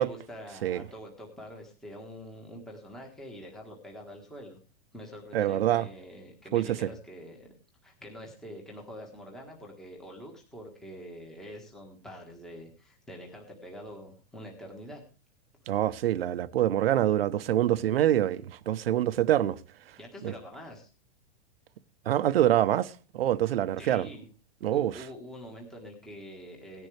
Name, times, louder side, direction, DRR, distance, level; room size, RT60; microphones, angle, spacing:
voice 1, 0.0-4.6 4.9-7.5 7.8-15.0 20.0-20.9 23.8-24.3 24.7-26.9, equal, ahead, 1.4 m, -45 dB
voice 2, 5.3-5.8 6.5-6.9 15.7-19.6 20.2-20.3 22.1-24.1 24.6-24.9, right 12 dB, 55° right, 0.9 m, -25 dB
18.0 x 10.5 x 3.3 m
supercardioid pair, 180°, 35 cm